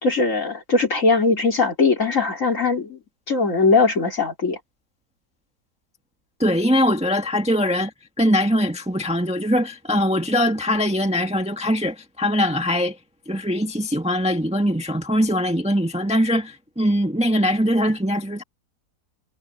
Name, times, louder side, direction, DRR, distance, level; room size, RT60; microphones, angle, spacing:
voice 1, 0.0-3.0 3.3-4.6, left 4 dB, 50° left, 3.6 m, -20 dB
voice 2, 6.4-7.9 8.2-12.9 13.3-18.4, equal, 5° right, 1.5 m, -21 dB
omnidirectional pair, 1.8 m